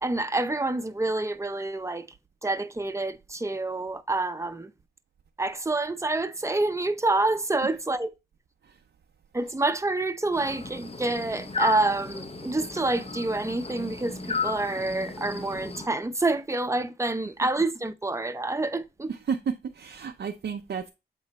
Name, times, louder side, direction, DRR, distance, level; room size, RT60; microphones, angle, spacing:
voice 1, 0.0-2.1 2.4-4.7 5.4-8.1 9.3-19.1, right 2 dB, 15° right, 0.6 m, -27 dB
sound 1, 10.3-15.9, left 4 dB, 35° left, 0.7 m, -34 dB
voice 2, 19.1-20.9, right 6 dB, 85° right, 0.6 m, -32 dB
7.9 x 3.1 x 4.2 m
cardioid pair, 55°, 18 cm